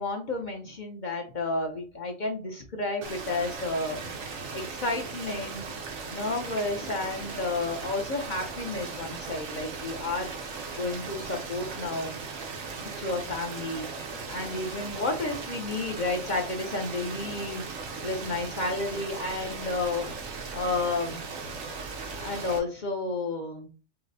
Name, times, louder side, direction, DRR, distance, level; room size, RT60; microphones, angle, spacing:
voice 1, 0.0-4.0 4.5-5.7 6.1-10.3 10.8-12.1 13.0-13.9 14.3-17.7 18.0-20.1 20.5-21.2 22.2-23.7, left 3 dB, 55° left, 3 dB, 0.5 m, -31 dB
sound 1, 3.0-22.6, right 4 dB, 90° right, 1.3 m, -38 dB
5.7 x 2.0 x 2.6 m, 0.37 s
omnidirectional pair, 1.3 m